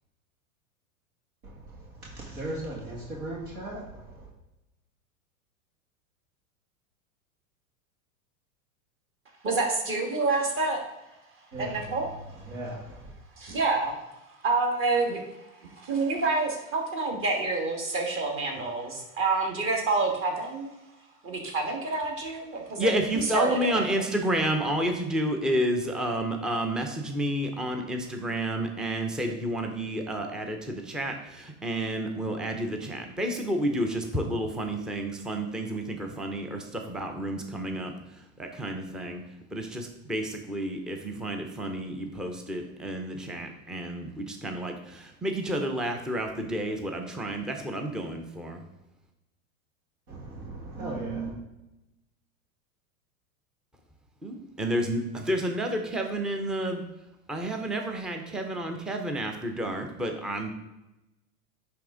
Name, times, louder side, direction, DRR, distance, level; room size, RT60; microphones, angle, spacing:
voice 1, 1.4-4.3 11.5-12.8 50.1-51.4, right 2 dB, 80° right, -3 dB, 2.2 m, -37 dB
voice 2, 9.4-10.8 11.6-12.1 13.4-14.0 14.4-15.2 15.6-20.7 21.2-22.9 23.3-23.8, right 3 dB, 30° right, 1 dB, 1.5 m, -27 dB
voice 3, 22.8-39.2 39.5-48.6 54.2-56.8 57.3-60.5, right 1 dB, ahead, 4 dB, 0.4 m, -30 dB
9.9 x 3.5 x 3.7 m, 0.96 s
hypercardioid pair, 115°, 42 cm